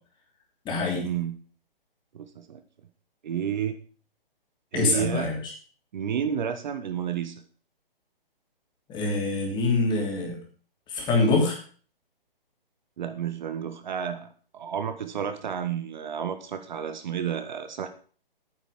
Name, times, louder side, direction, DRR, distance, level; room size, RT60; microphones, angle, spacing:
voice 1, 0.6-1.1 4.7-5.4 8.9-10.4 10.9-11.6, left 3 dB, 15° left, 1 dB, 3.1 m, -25 dB
voice 2, 2.1-2.6 3.2-3.7 4.7-5.3 5.9-7.4 13.0-17.9, right 8 dB, 50° right, 9 dB, 1.3 m, -31 dB
9.2 x 8.1 x 6.6 m, 0.42 s
hypercardioid pair, 140°, 29 cm